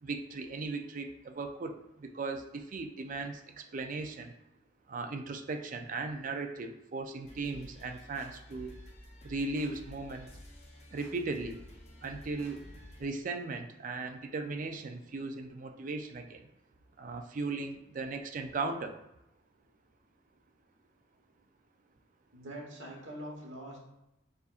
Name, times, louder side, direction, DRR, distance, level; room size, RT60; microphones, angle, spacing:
voice 1, 0.0-4.3 4.9-8.7 9.2-10.3 10.9-11.6 12.0-12.6 13.0-16.4 17.0-18.9, right 3 dB, 40° right, 5 dB, 0.4 m, -37 dB
sound 1, 7.2-13.1, left 1 dB, 35° left, 0.7 m, -51 dB
voice 2, 22.3-23.8, equal, 80° right, -1 dB, 1.2 m, -44 dB
6.8 x 2.5 x 2.4 m, 0.88 s
head